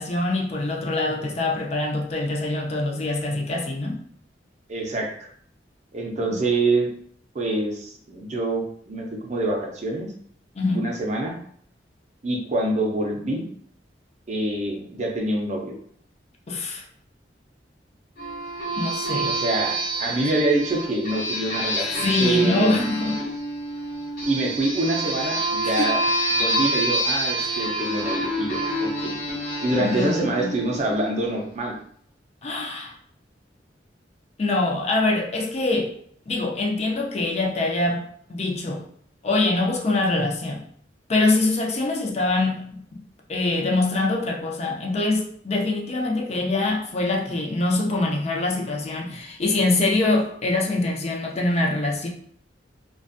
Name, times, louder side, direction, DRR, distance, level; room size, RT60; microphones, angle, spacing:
voice 1, 0.0-4.0 6.3-6.4 10.5-10.9 16.5-16.8 18.8-19.3 22.0-23.2 25.6-25.9 27.4-27.6 29.8-30.6 32.4-32.9 34.4-35.9 36.3-38.0 38.3-38.8 39.2-40.6 41.1-43.0 43.3-52.1, left 2 dB, 40° left, 0 dB, 0.4 m, -24 dB
voice 2, 4.7-5.3 5.9-6.9 7.3-10.1 10.7-11.3 12.2-13.4 14.3-15.7 19.3-22.9 24.3-26.0 26.3-29.2 29.6-31.7, right 2 dB, 40° right, 1 dB, 0.5 m, -26 dB
sound 1, 18.2-31.4, right 1 dB, 60° left, 1.2 m, -27 dB
2.4 x 2.2 x 2.5 m, 0.63 s
head